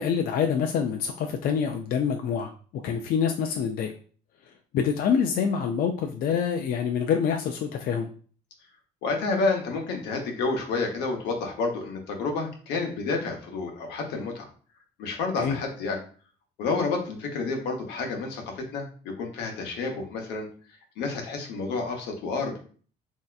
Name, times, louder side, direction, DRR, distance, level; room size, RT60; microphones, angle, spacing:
voice 1, 0.0-2.5 2.8-3.9 4.7-8.1 15.4-15.6, left 7 dB, 60° left, 4 dB, 0.4 m, -26 dB
voice 2, 9.0-14.5 15.0-16.0 16.6-20.5 21.0-22.6, left 3 dB, 85° left, 2 dB, 0.9 m, -29 dB
3.3 x 2.7 x 2.3 m, 0.42 s
cardioid pair, 110°, 17 cm